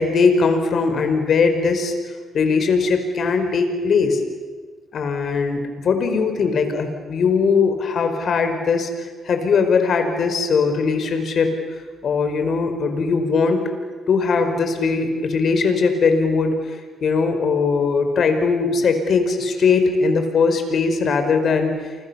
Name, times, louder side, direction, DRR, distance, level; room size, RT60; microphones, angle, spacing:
voice 1, 0.0-4.2 4.9-11.5 12.0-13.7 14.1-21.7, left 4 dB, 55° left, 7 dB, 4.8 m, -20 dB
29.5 x 25.5 x 7.1 m, 1.5 s
cardioid pair, 90°, 0 cm